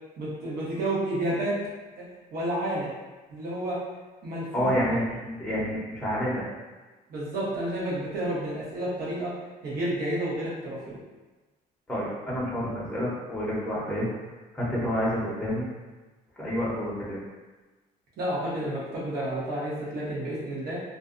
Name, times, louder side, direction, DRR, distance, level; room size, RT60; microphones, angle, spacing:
voice 1, 0.2-1.6 2.0-2.9 3.3-3.8 4.2-4.7 7.1-9.4 9.6-11.0 18.2-20.8, right 1 dB, 65° right, -6 dB, 1.0 m, -30 dB
voice 2, 4.5-6.4 11.9-14.1 14.5-15.7 16.4-17.2, equal, 5° left, -8 dB, 0.7 m, -28 dB
2.5 x 2.2 x 2.5 m, 1.2 s
cardioid pair, 110°, 17 cm